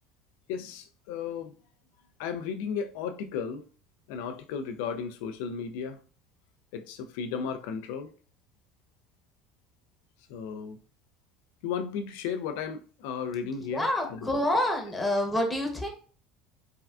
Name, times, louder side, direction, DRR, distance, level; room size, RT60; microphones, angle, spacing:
voice 1, 0.5-1.5 2.2-3.6 4.1-6.0 6.7-8.1 10.3-10.8 11.6-14.4, left 6 dB, 75° left, 0.4 m, -34 dB
voice 2, 13.7-15.9, left 1 dB, 10° left, 0.8 m, -27 dB
3.3 x 2.3 x 2.4 m
supercardioid pair, 90°, 0 cm